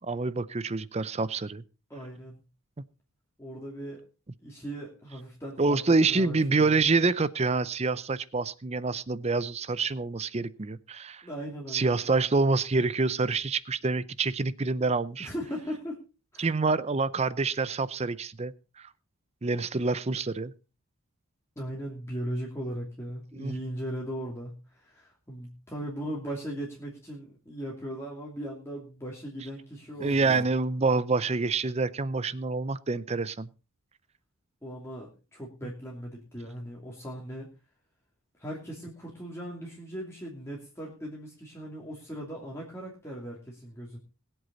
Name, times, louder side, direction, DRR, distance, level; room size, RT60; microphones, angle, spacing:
voice 1, 0.0-1.6 5.6-11.2 11.7-15.3 16.4-18.5 19.4-20.5 23.3-23.6 30.0-33.5, right 3 dB, 30° right, 17 dB, 0.5 m, -27 dB
voice 2, 1.9-2.4 3.4-4.0 4.4-5.8 6.1-6.8 11.2-12.0 15.2-16.0 16.3-16.5 21.6-30.4 34.6-37.5 38.4-44.0, right 1 dB, 10° left, -3 dB, 2.8 m, -38 dB
sound 1, 29.8-30.4, right 2 dB, 65° right, 1.6 m, -46 dB
21.0 x 8.0 x 4.0 m, 0.32 s
head